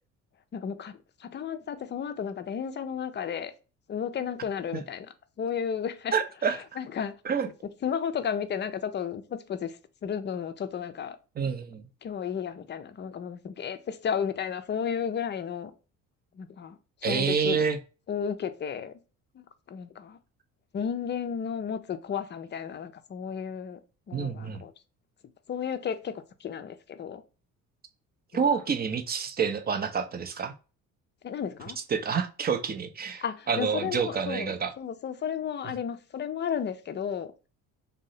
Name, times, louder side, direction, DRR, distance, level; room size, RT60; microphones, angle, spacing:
voice 1, 0.5-3.5 3.9-5.1 5.4-6.1 6.4-7.1 7.8-11.2 12.0-15.7 16.4-17.6 18.1-19.0 19.3-20.2 20.7-23.8 24.1-24.7 25.5-27.2 28.3-28.4 31.2-31.8 33.2-37.3, left 7 dB, 30° left, 0.4 m, -33 dB
voice 2, 6.1-6.6 7.3-7.5 11.4-11.8 17.0-17.8 24.1-24.6 28.3-30.5 31.9-34.7, right 6 dB, 25° right, 0.5 m, -28 dB
2.7 x 2.1 x 3.9 m
hypercardioid pair, 55°, 40 cm